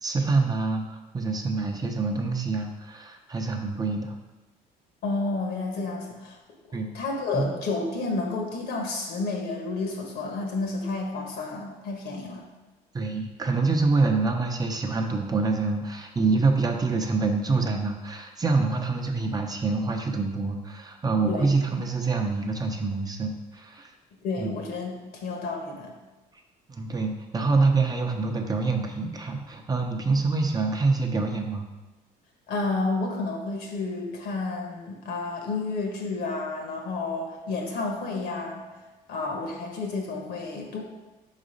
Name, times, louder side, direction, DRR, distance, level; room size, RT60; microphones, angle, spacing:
voice 1, 0.0-4.2 6.7-6.9 7.3-7.5 12.9-23.9 24.4-24.5 26.7-31.6, right 3 dB, 25° right, 3 dB, 0.6 m, -26 dB
voice 2, 5.0-6.4 6.6-12.4 21.3-21.5 24.2-26.0 32.5-38.6 39.1-40.8, left 3 dB, 70° left, 1 dB, 1.4 m, -31 dB
4.7 x 4.0 x 5.2 m, 1.1 s
cardioid pair, 110°, 17 cm